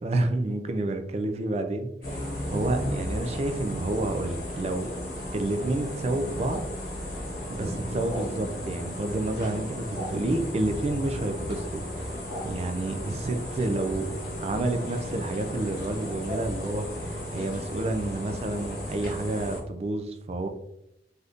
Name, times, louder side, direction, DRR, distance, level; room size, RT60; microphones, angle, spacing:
voice 1, 0.0-4.9 5.3-6.7 7.5-12.1 12.4-14.1 14.4-20.5, right 2 dB, 35° right, 7 dB, 0.3 m, -29 dB
sound 1, 2.0-19.6, equal, 60° left, 1.0 m, -35 dB
3.4 x 2.7 x 2.4 m, 0.82 s
head